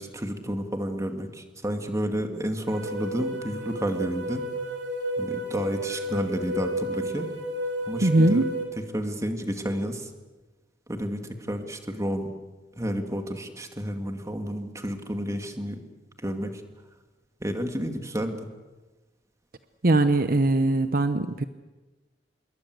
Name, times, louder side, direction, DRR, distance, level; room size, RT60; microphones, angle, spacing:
voice 1, 0.0-4.4 5.2-7.3 7.9-8.4 8.9-10.1 10.9-12.3 12.8-15.8 16.2-16.6 17.4-18.4, equal, 15° right, 5 dB, 2.5 m, -30 dB
sound 1, 2.6-8.6, right 1 dB, 75° right, 5.7 m, -32 dB
voice 2, 8.0-8.5 19.8-21.4, right 2 dB, 50° right, 10 dB, 0.9 m, -21 dB
26.5 x 22.5 x 8.0 m, 1.2 s
head